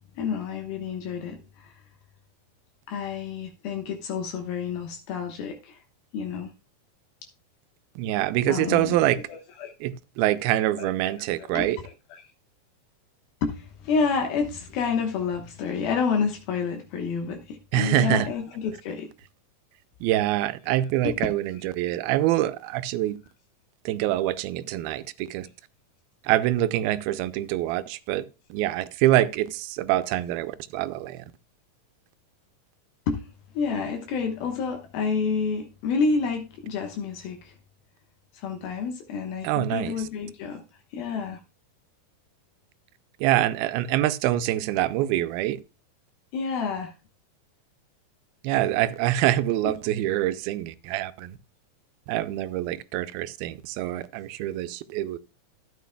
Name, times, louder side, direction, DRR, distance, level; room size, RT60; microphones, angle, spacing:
voice 1, 0.2-1.7 2.9-5.8 6.1-6.5 8.5-9.7 10.8-12.3 13.4-19.1 20.7-21.6 33.1-33.3 33.5-37.5 38.3-40.6 40.9-41.4 46.3-46.9 49.6-49.8, left 5 dB, 80° left, 3.0 m, -29 dB
voice 2, 8.0-9.2 9.8-11.8 17.7-18.3 20.0-21.4 21.8-23.2 23.9-25.0 25.3-25.5 26.3-28.2 28.5-31.2 39.4-39.9 43.2-45.6 48.4-51.3 52.1-55.2, right 14 dB, 85° right, 2.5 m, -25 dB
13.5 x 8.9 x 2.2 m
omnidirectional pair, 4.2 m